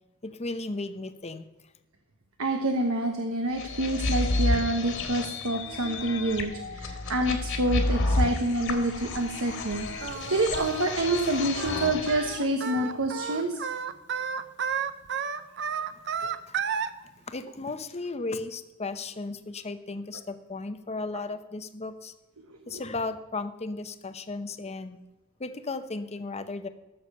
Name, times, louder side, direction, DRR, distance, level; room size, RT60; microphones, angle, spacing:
voice 1, 0.2-1.5 16.5-16.6 17.0-22.1 22.7-25.0 25.4-26.7, left 3 dB, 30° left, 10 dB, 0.8 m, -35 dB
voice 2, 2.4-9.9 10.3-13.6 16.2-16.3 22.7-22.8, right 1 dB, 80° right, 4 dB, 1.2 m, -27 dB
sound 1, 3.6-12.4, left 2 dB, 60° left, 1.9 m, -30 dB
Singing, 10.0-16.9, right 6 dB, 55° right, 0.7 m, -32 dB
14.0 x 6.8 x 6.7 m, 1.1 s
head